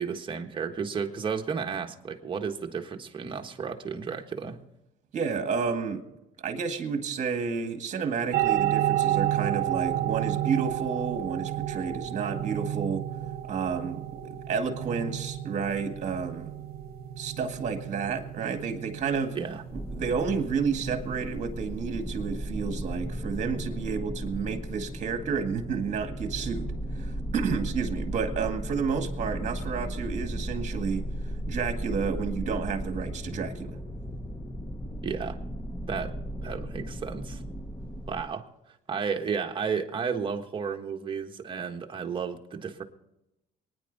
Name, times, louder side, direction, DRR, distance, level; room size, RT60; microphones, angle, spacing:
voice 1, 0.0-4.6 19.3-19.6 35.0-35.4 35.9-36.2 36.4-37.4 38.1-38.4 38.9-42.8, right 6 dB, 30° right, 3 dB, 1.4 m, -32 dB
voice 2, 5.1-6.0 6.4-13.0 13.5-16.5 17.2-19.4 19.9-26.7 27.0-31.0 31.5-33.8, right 6 dB, 45° right, 6 dB, 2.0 m, -31 dB
sound 1, 8.3-23.1, right 12 dB, 70° right, 0.9 m, -31 dB
sound 2, 19.7-38.2, equal, 10° left, 0.9 m, -35 dB
23.5 x 10.0 x 4.1 m, 0.91 s
cardioid pair, 110°, 17 cm